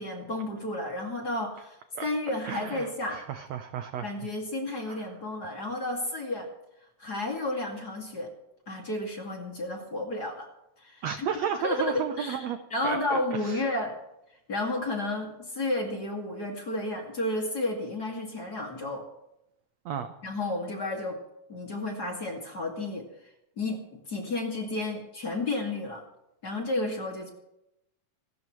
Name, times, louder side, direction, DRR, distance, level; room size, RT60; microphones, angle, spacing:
voice 1, 0.0-3.2 4.0-6.5 7.0-8.3 8.7-10.5 10.8-11.3 11.6-12.4 12.7-13.9 14.5-19.0 20.2-21.2 21.5-23.1 23.6-26.0 26.4-27.3, left 2 dB, 30° left, 1 dB, 2.4 m, -32 dB
voice 2, 2.4-4.1 4.9-5.0 11.0-12.6 12.8-13.7 19.8-20.1, right 8 dB, 75° right, 8 dB, 1.6 m, -33 dB
26.0 x 13.0 x 3.2 m, 0.86 s
omnidirectional pair, 4.0 m